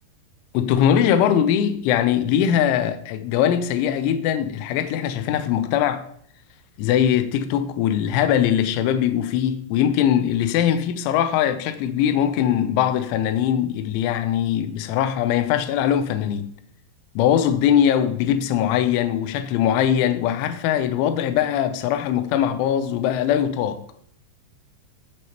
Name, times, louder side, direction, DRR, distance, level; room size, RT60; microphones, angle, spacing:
voice 1, 0.5-6.0 6.8-16.5 17.2-24.0, left 9 dB, 85° left, 2.8 m, -21 dB
12.0 x 6.3 x 2.9 m
omnidirectional pair, 5.8 m